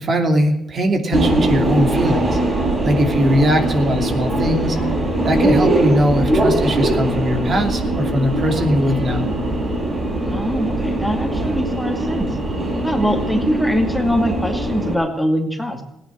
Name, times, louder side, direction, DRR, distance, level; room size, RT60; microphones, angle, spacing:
voice 1, 0.0-2.4 2.8-4.8 5.2-9.3, equal, 45° right, 4 dB, 2.8 m, -20 dB
Subway metro underground, 1.1-14.9, right 1 dB, 30° right, 7.9 m, -21 dB
voice 2, 10.3-12.4 12.8-15.8, equal, 5° left, 3 dB, 2.4 m, -22 dB
16.5 x 10.0 x 8.5 m, 0.81 s
cardioid pair, 90°, 0 cm